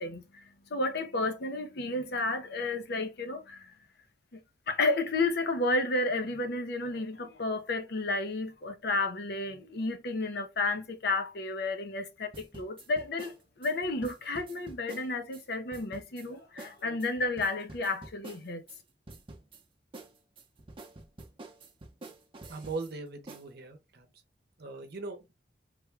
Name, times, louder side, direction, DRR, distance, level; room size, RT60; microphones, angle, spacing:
voice 1, 0.0-3.7 4.3-4.4 4.7-18.6, left 2 dB, 60° left, 0.7 m, -32 dB
sound 1, 12.3-15.4 15.7-16.3 16.6-16.7 17.0-18.8 19.1-19.6 19.9-22.9 23.3-23.5, right 2 dB, 30° right, 0.7 m, -48 dB
voice 2, 22.5-24.1 24.6-25.3, right 3 dB, 60° right, 0.8 m, -39 dB
3.4 x 2.2 x 3.3 m
head